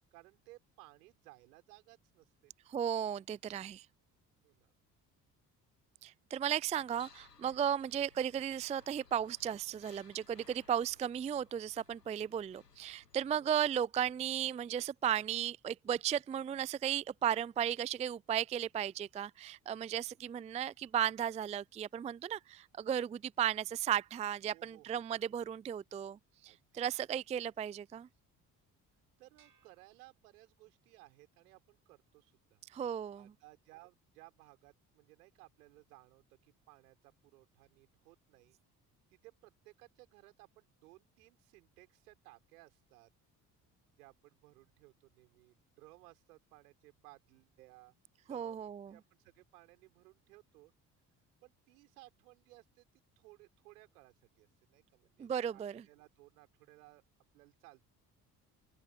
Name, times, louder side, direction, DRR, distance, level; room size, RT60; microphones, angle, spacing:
voice 1, 0.1-2.5 4.4-4.7 13.4-13.6 24.4-25.1 26.5-26.8 29.2-32.6 33.1-38.6 39.1-43.1 44.0-47.9 48.3-48.6 48.9-50.7 51.4-52.9 53.2-57.0 57.3-57.8, right 20 dB, 75° right, 6.4 m, -60 dB
voice 2, 2.7-3.9 6.0-28.1 32.7-33.3 48.3-48.9 55.2-55.8, right 9 dB, 15° right, 0.4 m, -35 dB
sound 1, 6.7-13.3, left 5 dB, 90° left, 1.4 m, -63 dB
sound 2, 29.4-30.9, right 7 dB, 45° right, 6.3 m, -71 dB
open air
figure-of-eight pair, 45°, 47 cm